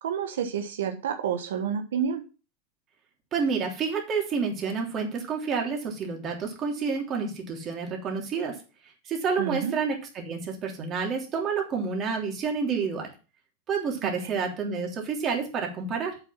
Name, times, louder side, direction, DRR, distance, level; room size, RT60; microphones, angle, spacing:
voice 1, 0.0-2.2 9.4-9.7 14.0-14.3, right 8 dB, 90° right, 7 dB, 1.2 m, -29 dB
voice 2, 3.3-8.6 9.1-13.1 13.7-16.2, right 5 dB, 35° right, 1 dB, 3.2 m, -29 dB
7.8 x 6.0 x 5.9 m, 0.33 s
supercardioid pair, 130°, 0 cm